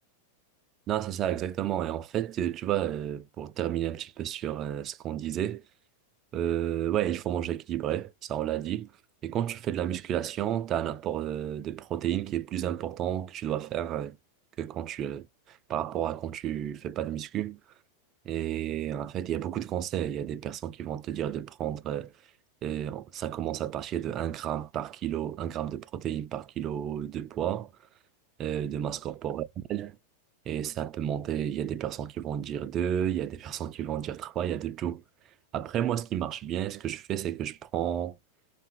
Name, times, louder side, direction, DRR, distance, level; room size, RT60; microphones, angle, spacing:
voice 1, 0.9-5.6 6.3-8.9 9.2-14.2 14.6-17.6 18.3-22.1 22.6-27.7 28.4-29.4 29.7-29.9 30.5-35.0 35.5-38.2, right 10 dB, 30° right, 0.3 m, -31 dB
3.4 x 2.6 x 3.2 m
figure-of-eight pair, 90°, 0 cm